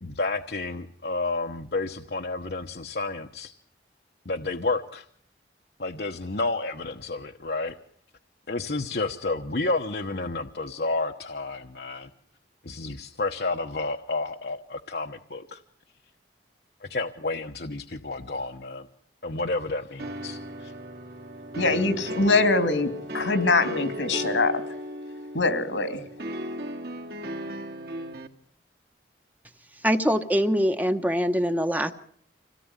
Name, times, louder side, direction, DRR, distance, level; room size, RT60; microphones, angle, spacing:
voice 1, 0.0-3.5 4.2-5.0 5.8-7.7 8.5-12.1 12.6-15.6 16.8-18.9 19.2-20.7, left 3 dB, 60° left, 4 dB, 1.1 m, -30 dB
sound 1, 20.0-28.3, equal, 55° right, 2.4 m, -36 dB
voice 2, 21.6-24.6 25.3-26.0, left 3 dB, 90° left, 8 dB, 3.1 m, -23 dB
voice 3, 29.8-31.9, equal, 10° right, 8 dB, 1.1 m, -23 dB
26.5 x 17.5 x 9.8 m, 0.65 s
head